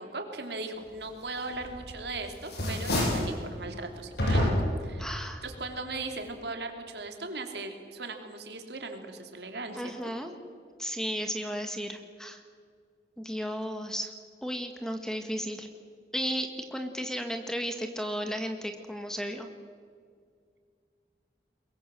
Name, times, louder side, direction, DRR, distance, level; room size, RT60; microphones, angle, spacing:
voice 1, 0.0-4.5 4.8-5.1 5.4-10.1, right 3 dB, 75° right, 5 dB, 3.1 m, -38 dB
sound 1, 1.6-2.1 2.4-3.3 4.2-4.8, left 1 dB, 70° left, 7.5 m, -27 dB
voice 2, 5.0-5.4 9.7-10.3 10.8-12.4 13.2-14.1 14.4-15.7 16.1-19.5, equal, 5° left, 6 dB, 1.6 m, -34 dB
22.5 x 22.0 x 7.6 m, 2.1 s
head